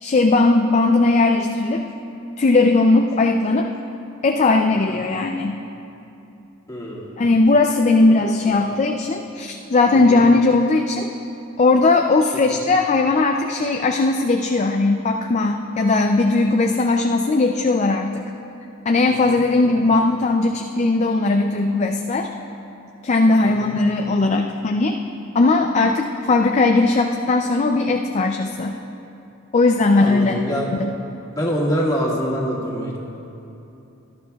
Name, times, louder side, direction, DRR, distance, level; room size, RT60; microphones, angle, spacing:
voice 1, 0.0-1.8 2.4-3.7 4.2-5.6 7.2-11.1 11.6-18.2 18.9-22.3 23.0-25.0 25.3-28.8 29.5-30.4 30.8-30.9, left 3 dB, 30° left, 3 dB, 0.4 m, -18 dB
voice 2, 6.7-7.3 8.6-8.8 9.9-10.3 12.5-12.6 19.1-19.4 19.6-19.7 23.4-23.7 30.0-30.7 31.3-33.0, equal, 15° left, -4 dB, 1.7 m, -26 dB
19.5 x 11.5 x 2.3 m, 2.8 s
head